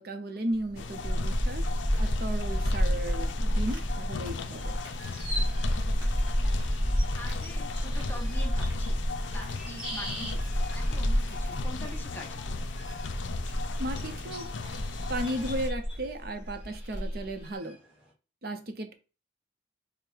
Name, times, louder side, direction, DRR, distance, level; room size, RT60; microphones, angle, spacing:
voice 1, 0.0-1.6 2.0-4.8 13.8-14.5 15.1-17.8 18.4-18.9, right 1 dB, 55° right, 0.7 m, -35 dB
sound 1, 0.5-17.4, equal, 25° right, 1.6 m, -30 dB
sound 2, 0.8-15.7, left 4 dB, 80° left, 0.4 m, -38 dB
sound 3, 3.0-18.1, equal, 5° right, 1.8 m, -46 dB
voice 2, 7.1-9.0 9.3-10.4 10.7-12.6, equal, 10° left, 0.6 m, -44 dB
5.0 x 2.1 x 4.5 m
head